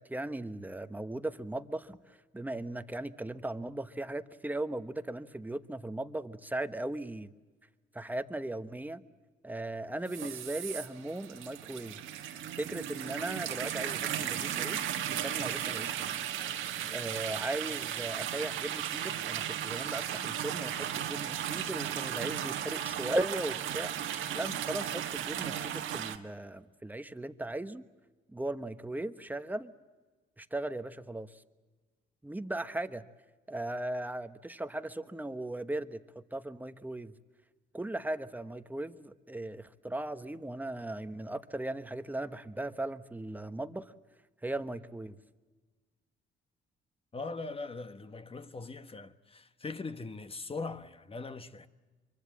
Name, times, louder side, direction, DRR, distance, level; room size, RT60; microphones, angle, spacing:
voice 1, 0.0-7.3 7.9-9.0 9.4-12.0 12.6-16.0 16.9-23.9 24.3-27.8 28.3-29.7 30.4-31.4 32.2-33.0 33.5-37.1 37.7-43.9 44.4-45.2, right 1 dB, 10° right, 1.2 m, -38 dB
sound 1, 10.1-26.2, right 10 dB, 80° right, 1.6 m, -36 dB
voice 2, 47.1-51.7, left 3 dB, 30° left, 1.4 m, -41 dB
25.0 x 24.0 x 7.5 m
cardioid pair, 90°, 20 cm